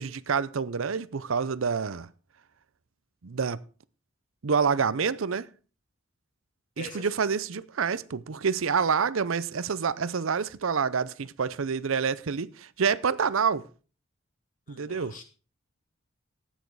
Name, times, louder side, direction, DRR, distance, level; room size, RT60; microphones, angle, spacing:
voice 1, 0.0-2.1 3.2-3.6 4.4-5.5 6.8-13.6 14.7-15.1, right 6 dB, 75° right, 0.6 m, -27 dB
voice 2, 6.8-7.4 14.7-15.2, left 2 dB, 40° left, 2.6 m, -44 dB
13.5 x 9.3 x 4.7 m
head